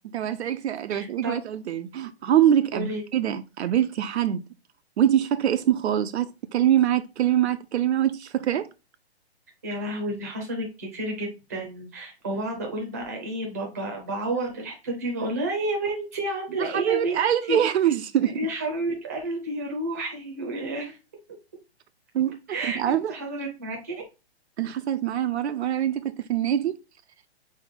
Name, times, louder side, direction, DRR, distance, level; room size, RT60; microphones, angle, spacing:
voice 1, 0.1-4.4 5.0-8.7 16.6-18.5 22.1-22.4 22.6-23.1 24.6-26.8, right 10 dB, 85° right, 0.5 m, -24 dB
voice 2, 0.9-1.3 2.7-3.0 9.6-17.6 18.2-21.0 22.5-24.0, right 1 dB, 15° right, 0.5 m, -31 dB
4.0 x 3.2 x 3.4 m
hypercardioid pair, 175°, 32 cm